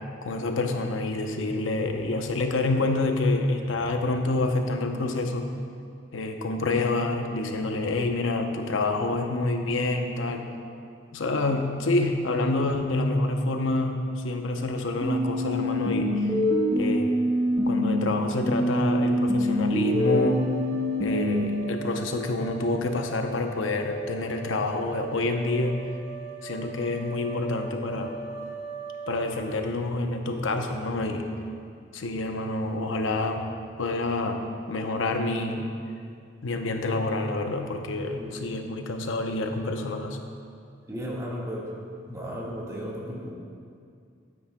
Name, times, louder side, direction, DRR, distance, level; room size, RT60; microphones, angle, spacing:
voice 1, 0.2-5.5 6.1-10.5 11.1-16.3 16.7-17.2 17.7-20.5 21.0-25.8 26.4-28.1 29.1-31.3 31.9-33.5 33.8-35.6 36.4-40.2, left 2 dB, 85° left, 4 dB, 0.7 m, -27 dB
sound 1, 15.0-18.0 18.4-21.4, equal, 10° left, 1.2 m, -25 dB
sound 2, 19.8-29.6, right 4 dB, 35° right, 1.4 m, -40 dB
voice 2, 38.2-38.5 40.9-41.6 42.1-43.3, equal, 15° right, -5 dB, 1.6 m, -34 dB
12.5 x 9.6 x 2.2 m, 2.3 s
head